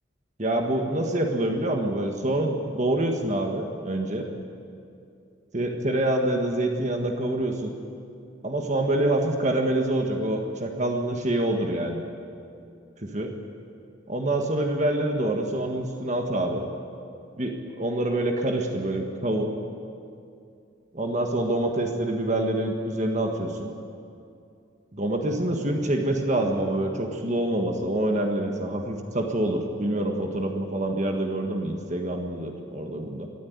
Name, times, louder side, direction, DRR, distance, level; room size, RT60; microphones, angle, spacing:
voice 1, 0.4-4.3 5.5-7.7 8.4-12.0 13.0-13.3 14.1-16.7 17.4-19.5 20.9-23.7 24.9-33.3, right 1 dB, 35° right, 3 dB, 1.6 m, -26 dB
22.5 x 13.0 x 9.6 m, 2.5 s
head